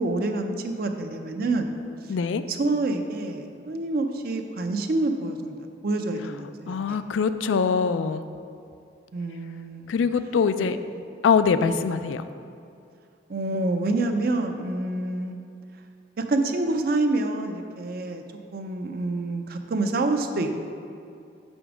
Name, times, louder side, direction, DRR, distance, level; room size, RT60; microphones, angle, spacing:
voice 1, 0.0-1.7 2.5-5.6 5.8-7.0 9.1-9.9 10.6-11.0 13.3-15.4 16.3-18.2 18.5-20.5, right 2 dB, 50° right, 6 dB, 0.5 m, -27 dB
voice 2, 2.1-2.4 6.7-8.2 9.9-10.8 11.2-12.2, left 5 dB, 85° left, 11 dB, 0.3 m, -23 dB
5.9 x 5.2 x 4.9 m, 2.5 s
head